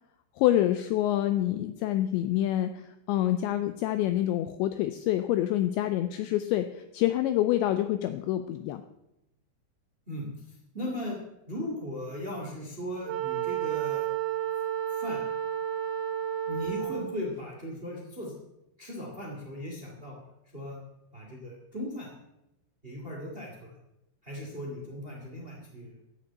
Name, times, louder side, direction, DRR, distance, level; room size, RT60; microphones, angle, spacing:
voice 1, 0.4-8.8, left 13 dB, 85° left, 9 dB, 2.5 m, -27 dB
voice 2, 10.1-11.2 11.5-14.1 14.9-15.2 16.4-18.3 18.8-20.2 20.5-20.8 21.1-22.1 22.8-23.7 24.2-26.0, left 1 dB, 65° right, -1 dB, 0.5 m, -38 dB
Wind instrument woodwind instrument, 13.1-17.2, right 10 dB, 85° right, 3.7 m, -31 dB
14.0 x 6.7 x 8.6 m, 0.88 s
omnidirectional pair, 5.9 m